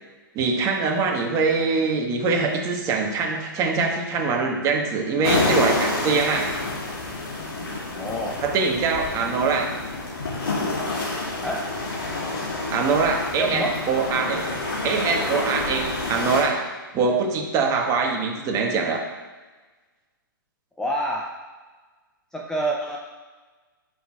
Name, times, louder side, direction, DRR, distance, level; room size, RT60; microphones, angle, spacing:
voice 1, 0.3-6.5 8.4-9.7 12.7-14.4 14.8-16.7 16.9-19.0, right 4 dB, 25° right, 1 dB, 1.4 m, -23 dB
sound 1, 5.2-16.4, left 2 dB, 90° left, 2.4 m, -28 dB
voice 2, 7.9-8.4 11.4-11.7 13.4-13.9 20.8-21.3 22.3-23.0, right 1 dB, 5° left, -2 dB, 0.6 m, -27 dB
14.0 x 6.2 x 2.4 m, 1.3 s
hypercardioid pair, 130°, 12 cm